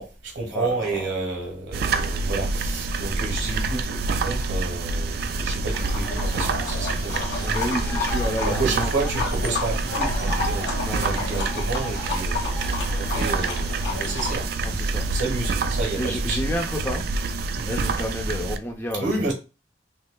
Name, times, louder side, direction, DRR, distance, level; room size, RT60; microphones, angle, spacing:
voice 1, 0.0-7.6 8.4-12.4 13.0-16.4 17.5-17.8 19.0-19.3, right 3 dB, 90° right, 1.2 m, -30 dB
voice 2, 0.5-1.1 7.4-8.9 10.8-11.5 14.6-15.0 16.0-17.1 17.7-19.1, equal, 15° left, 0.6 m, -30 dB
sound 1, 1.7-18.6, right 3 dB, 60° right, 0.3 m, -27 dB
Livestock farm animals working animals, 5.7-14.4, left 3 dB, 70° left, 1.2 m, -31 dB
5.2 x 2.0 x 2.3 m
head